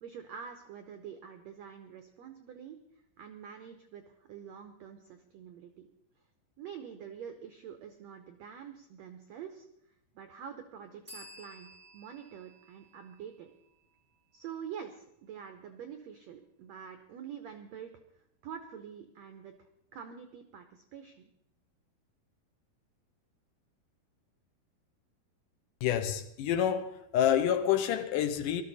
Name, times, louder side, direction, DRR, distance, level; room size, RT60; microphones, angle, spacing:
voice 1, 0.0-2.8 3.2-5.9 6.6-9.7 10.1-11.7 11.9-13.5 14.3-17.9 18.4-19.5 19.9-21.3, right 8 dB, 85° right, 1.5 m, -46 dB
sound 1, 11.1-14.6, equal, 10° right, 4.6 m, -54 dB
voice 2, 25.8-28.6, left 9 dB, 75° left, 2.1 m, -28 dB
18.5 x 13.0 x 4.2 m
omnidirectional pair, 4.5 m